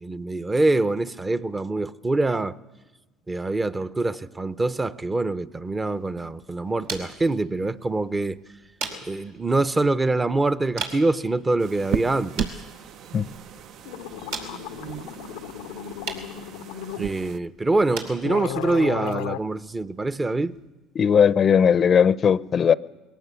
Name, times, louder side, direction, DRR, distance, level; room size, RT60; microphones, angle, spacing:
voice 1, 0.0-2.6 3.3-8.4 9.1-12.5 17.0-20.5, right 2 dB, 20° right, 0.8 m, -24 dB
sound 1, 5.6-20.7, right 4 dB, 85° right, 4.5 m, -41 dB
sound 2, 11.6-17.4, right 8 dB, 60° right, 0.7 m, -35 dB
sound 3, 13.6-13.7 13.8-17.0 17.8-17.9 18.2-19.4, left 13 dB, 85° left, 0.6 m, -34 dB
voice 2, 21.0-22.7, left 7 dB, 45° left, 0.6 m, -18 dB
21.5 x 17.5 x 8.3 m
supercardioid pair, 90°, 0 cm